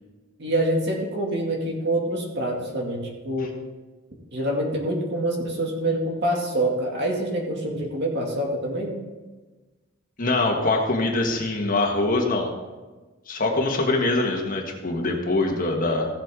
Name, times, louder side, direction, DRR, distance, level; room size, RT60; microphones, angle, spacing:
voice 1, 0.4-3.5 4.3-9.0, right 1 dB, 55° right, -1 dB, 2.3 m, -26 dB
voice 2, 10.2-12.5 13.3-16.1, left 2 dB, 40° left, 1 dB, 1.5 m, -23 dB
15.5 x 7.7 x 3.7 m, 1.3 s
head